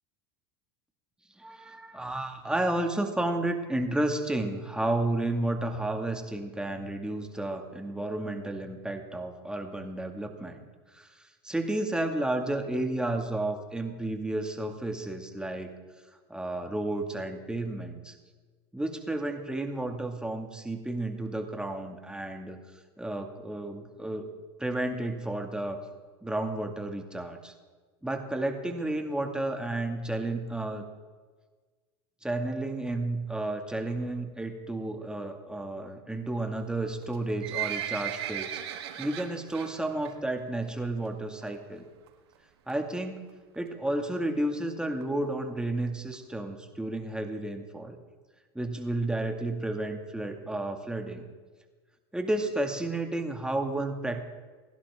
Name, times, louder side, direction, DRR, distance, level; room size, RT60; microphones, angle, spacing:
voice 1, 1.4-10.6 10.9-15.7 16.3-18.1 18.7-22.6 23.0-24.3 24.6-25.8 26.2-27.5 28.0-30.8 32.2-38.5 39.0-41.8 42.7-43.2 43.6-48.0 48.5-51.2 52.1-54.2, right 1 dB, 5° right, 4 dB, 2.2 m, -32 dB
Livestock farm animals working animals, 37.0-39.7 40.0-40.3 40.6-40.7 41.4-41.5 41.8-41.9 42.1-42.2 42.7-43.0 43.5-43.6 43.9-44.0 44.1-44.2 44.4-44.5 45.0-45.1 45.6-45.7 46.1-46.2, right 11 dB, 75° right, 1.7 m, -35 dB
29.0 x 11.5 x 3.7 m, 1.4 s
hypercardioid pair, 85°, 14 cm